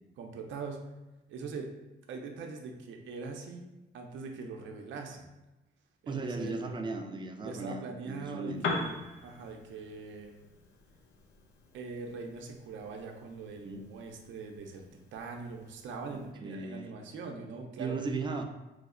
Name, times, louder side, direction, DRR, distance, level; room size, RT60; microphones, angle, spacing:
voice 1, 0.2-0.8 1.3-1.7 2.1-3.6 3.9-5.3 6.0-6.7 7.4-8.9 9.2-10.3 11.7-14.9 15.1-18.0, right 4 dB, 75° right, 2 dB, 0.5 m, -42 dB
voice 2, 6.1-8.8 13.6-13.9 16.1-16.9 17.8-18.4, right 3 dB, 25° right, 4 dB, 0.4 m, -37 dB
Piano, 8.5-16.3, left 3 dB, 85° left, 0.5 m, -42 dB
3.1 x 2.0 x 3.6 m, 1.0 s
cardioid pair, 90°, 20 cm